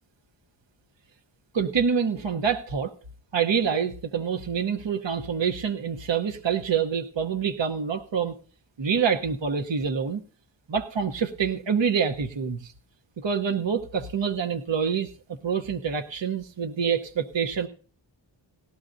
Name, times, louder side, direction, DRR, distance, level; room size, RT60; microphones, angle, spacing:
voice 1, 1.5-2.9 3.3-8.4 8.8-10.2 10.7-12.7 13.2-15.1 15.4-17.7, right 6 dB, 65° right, 6 dB, 1.0 m, -26 dB
18.0 x 14.0 x 2.6 m, 0.41 s
wide cardioid pair, 75°, 48 cm